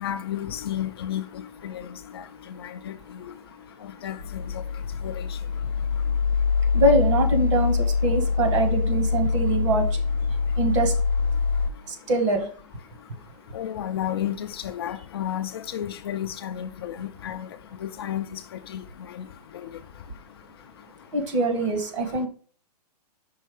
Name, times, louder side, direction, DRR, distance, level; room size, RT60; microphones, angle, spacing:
voice 1, 0.0-1.2 1.6-1.9 2.1-2.2 2.6-2.9 4.0-4.2 5.0-5.3 13.5-17.5 17.8-18.4 18.7-18.8, left 10 dB, 40° left, 0.4 m, -31 dB
sound 1, 4.2-11.7, left 5 dB, 80° left, 0.8 m, -24 dB
voice 2, 6.7-10.0 10.5-10.9 11.9-12.5 21.1-22.3, right 2 dB, 45° right, 1.5 m, -23 dB
5.5 x 4.1 x 4.9 m
hypercardioid pair, 165°, 21 cm